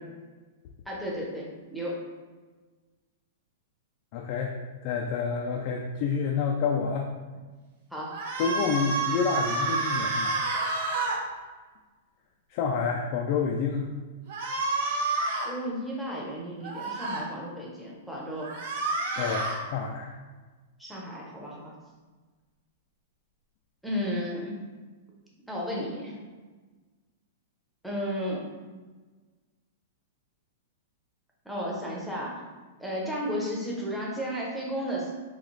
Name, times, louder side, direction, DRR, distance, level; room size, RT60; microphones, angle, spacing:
voice 1, 0.9-2.0 7.9-8.2 15.4-18.5 20.8-21.7 23.8-24.6 25.5-26.2 27.8-28.4 31.4-32.4 32.8-35.1, equal, ahead, -4 dB, 0.7 m, -33 dB
voice 2, 4.1-4.5 4.8-7.1 8.4-10.4 12.5-13.8 19.2-20.1, left 5 dB, 40° left, 0 dB, 0.3 m, -28 dB
sound 1, 8.1-11.2 14.3-15.5 16.6-17.2 18.4-19.6, right 3 dB, 70° right, 1.1 m, -29 dB
3.9 x 2.9 x 3.2 m, 1.3 s
supercardioid pair, 160°, 0 cm